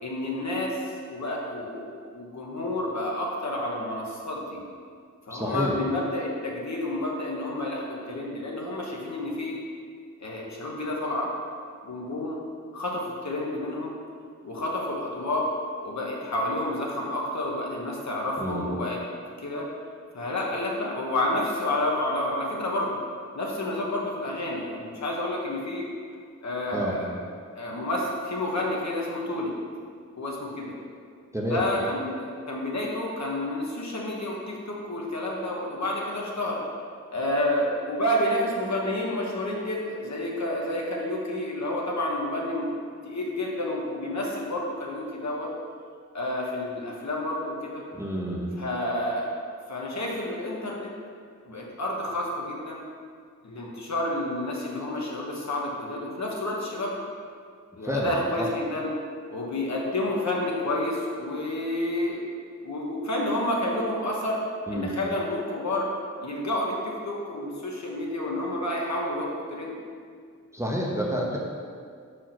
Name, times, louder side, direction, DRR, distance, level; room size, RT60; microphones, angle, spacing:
voice 1, 0.0-0.8 1.1-4.6 5.3-9.5 10.2-11.3 11.8-12.4 12.7-13.9 14.4-15.5 15.8-19.0 19.4-19.7 20.1-23.0 23.3-25.9 26.4-27.1 27.6-29.5 30.2-30.7 31.5-36.6 37.1-42.7 43.0-45.5 46.1-47.8 48.6-49.3 49.7-50.9 51.4-52.8 53.4-56.9 57.8-58.9 59.3-62.2 62.6-64.4 64.7-65.9 66.2-69.7, left 1 dB, 60° left, -3 dB, 1.3 m, -29 dB
voice 2, 5.3-5.8 18.4-18.7 26.7-27.0 31.3-31.6 47.9-48.5 57.8-58.5 64.7-64.9 70.5-71.4, equal, 10° right, -3 dB, 0.9 m, -29 dB
5.8 x 4.8 x 5.9 m, 2.1 s
wide cardioid pair, 115°, 31 cm